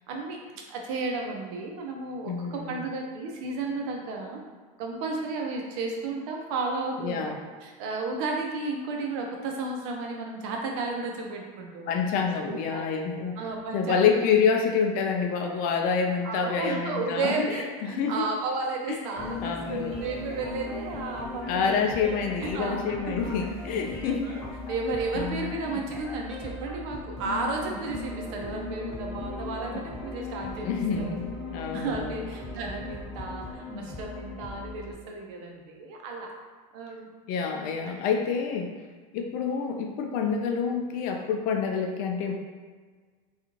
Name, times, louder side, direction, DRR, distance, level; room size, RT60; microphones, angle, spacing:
voice 1, 0.1-0.4 0.7-4.4 4.8-7.3 7.6-12.2 12.5-12.9 13.4-14.0 16.2-21.8 22.4-23.2 24.2-30.7 31.0-31.2 31.7-36.3 36.7-37.1 37.9-38.3, right 3 dB, 60° right, 1 dB, 0.6 m, -33 dB
voice 2, 2.3-2.8 7.0-7.4 11.9-13.4 13.7-18.2 18.9-19.0 19.4-19.9 21.5-24.4 25.1-25.5 30.6-32.2 37.3-38.7 39.1-42.3, left 6 dB, 45° left, 3 dB, 0.4 m, -27 dB
sound 1, 19.2-34.9, left 3 dB, ahead, 1.4 m, -37 dB
2.4 x 2.4 x 3.0 m, 1.5 s
supercardioid pair, 130°, 19 cm